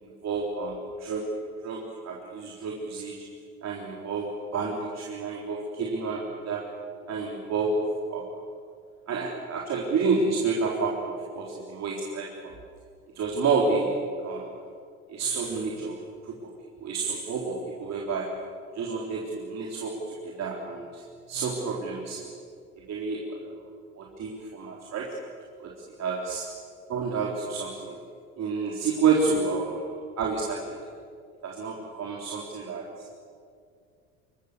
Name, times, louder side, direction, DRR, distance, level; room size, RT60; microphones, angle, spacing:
voice 1, 0.0-3.2 3.6-6.7 7.1-8.4 9.1-12.5 13.2-14.6 15.1-16.0 16.2-16.5 16.8-18.4 18.7-21.0 21.3-22.4 22.9-23.6 24.0-25.2 25.6-25.7 26.0-26.6 26.9-28.0 28.4-30.8 31.4-33.1, right 4 dB, 45° right, -2 dB, 3.9 m, -30 dB
27.5 x 22.5 x 6.9 m, 2.2 s
hypercardioid pair, 65°, 36 cm